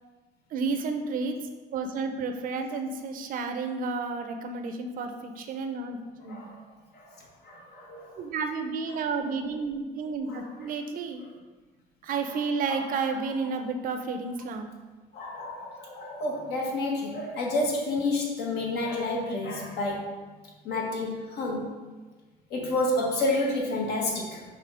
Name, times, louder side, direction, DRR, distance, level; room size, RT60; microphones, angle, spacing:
voice 1, 0.5-1.4 1.7-6.5 8.2-11.2 12.0-14.7, right 4 dB, 55° right, 6 dB, 0.5 m, -31 dB
voice 2, 7.4-8.1 9.5-9.6 10.3-10.5 12.3-12.4 12.7-13.0 15.1-20.2 20.6-21.7 22.5-24.4, left 2 dB, 75° left, -1 dB, 1.1 m, -30 dB
5.0 x 2.7 x 3.4 m, 1.3 s
cardioid pair, 110°, 17 cm